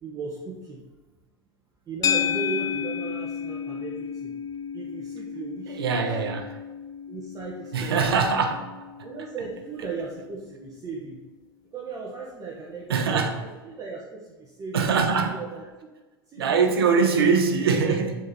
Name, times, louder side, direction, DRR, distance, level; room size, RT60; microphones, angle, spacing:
voice 1, 0.0-0.8 1.9-4.3 4.7-6.2 7.1-8.4 9.0-11.2 11.7-15.6 16.3-17.3, right 4 dB, 30° right, -3 dB, 1.2 m, -37 dB
sound 1, 2.0-10.5, left 8 dB, 30° left, 0.5 m, -32 dB
voice 2, 5.7-6.6 7.7-8.6 12.9-13.4 14.7-15.4 16.4-18.2, right 5 dB, 85° right, 5 dB, 0.9 m, -22 dB
6.4 x 4.4 x 4.2 m, 1.2 s
hypercardioid pair, 95°, 12 cm